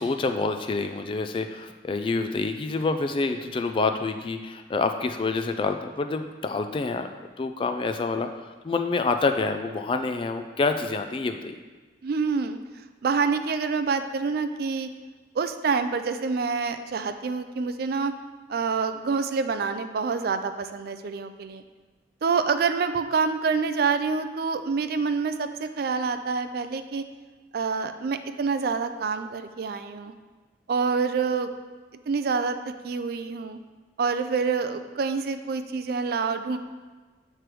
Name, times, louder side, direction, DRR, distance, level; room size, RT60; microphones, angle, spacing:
voice 1, 0.0-7.1 7.4-8.3 8.6-11.5, left 3 dB, 30° left, 7 dB, 0.3 m, -27 dB
voice 2, 12.0-12.6 13.0-14.9 15.4-18.1 18.5-21.6 22.2-27.0 27.5-30.1 30.7-31.5 32.1-32.6 32.8-33.6 34.0-36.6, right 5 dB, 55° right, 9 dB, 0.3 m, -27 dB
7.5 x 3.3 x 4.6 m, 1.3 s
head